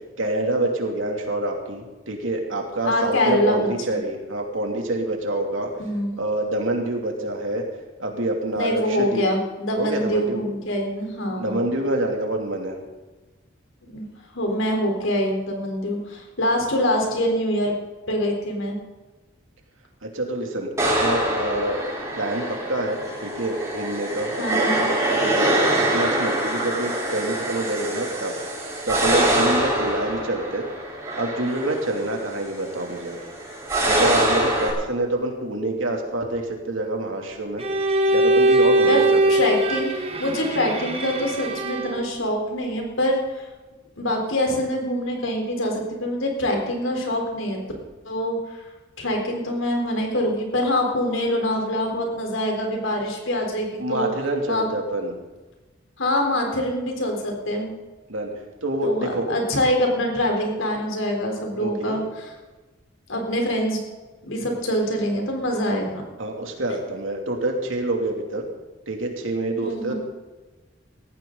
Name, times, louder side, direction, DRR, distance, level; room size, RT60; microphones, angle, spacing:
voice 1, 0.2-5.7 6.2-7.6 8.0-9.2 9.8-10.4 11.4-12.8 20.1-21.8 22.2-25.5 25.8-28.3 28.8-30.7 31.2-33.2 33.8-37.6 38.1-39.2 39.5-39.6 53.8-55.2 58.1-58.3 58.6-59.3 61.6-62.0 66.2-68.5 68.9-69.9, right 1 dB, 85° right, 1 dB, 2.8 m, -26 dB
voice 2, 2.8-4.0 5.8-6.1 8.5-11.6 13.9-14.1 14.3-17.7 18.1-18.7 24.4-24.8 38.9-43.5 44.0-47.6 48.0-48.4 49.0-54.1 54.5-54.6 56.0-57.7 58.8-62.3 63.1-63.8 64.2-65.9 69.6-69.9, left 1 dB, 80° left, 2 dB, 3.8 m, -24 dB
sound 1, 20.8-34.7, right 1 dB, 15° right, 4.0 m, -24 dB
Bowed string instrument, 37.6-42.1, right 1 dB, 30° right, 1.6 m, -21 dB
18.0 x 14.5 x 3.9 m, 1.2 s
head